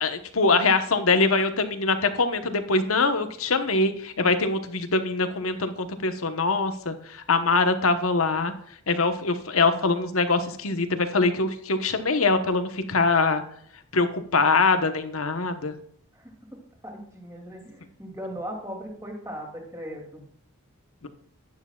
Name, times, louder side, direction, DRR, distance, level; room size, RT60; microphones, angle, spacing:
voice 1, 0.0-8.5 8.9-13.4 13.9-15.7, left 3 dB, 80° left, 8 dB, 1.1 m, -23 dB
voice 2, 16.1-20.2, equal, 15° right, 0 dB, 2.6 m, -38 dB
11.5 x 9.9 x 2.4 m, 0.67 s
head